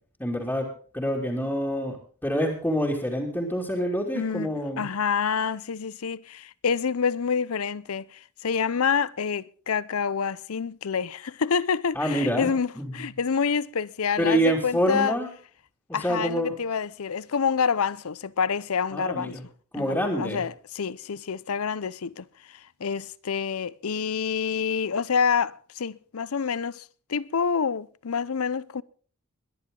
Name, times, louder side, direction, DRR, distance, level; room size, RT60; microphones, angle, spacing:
voice 1, 0.2-0.7 0.9-2.0 2.2-4.9 11.9-12.9 14.2-15.3 15.9-16.5 18.9-19.4 19.7-20.5, equal, 10° left, 2.6 m, -26 dB
voice 2, 4.1-15.2 15.9-19.4 19.7-26.8 27.1-28.8, left 6 dB, 75° left, 0.6 m, -27 dB
22.0 x 10.5 x 3.8 m
head